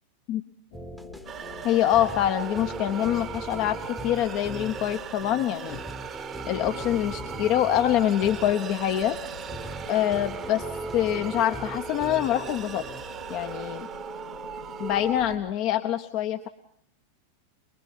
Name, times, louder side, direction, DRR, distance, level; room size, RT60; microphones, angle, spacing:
sound 1, 0.7-15.4, left 8 dB, 60° left, 4.1 m, -47 dB
sound 2, 0.7-13.0, right 1 dB, ahead, 1.0 m, -41 dB
sound 3, 1.2-15.4, right 7 dB, 25° right, 1.0 m, -38 dB
voice 1, 1.6-5.8 6.5-9.2 9.9-10.6 10.9-12.8 13.3-13.9 14.8-16.5, left 11 dB, 40° left, 9 dB, 1.0 m, -25 dB
24.5 x 22.5 x 5.4 m, 0.68 s
figure-of-eight pair, 90°, 0 cm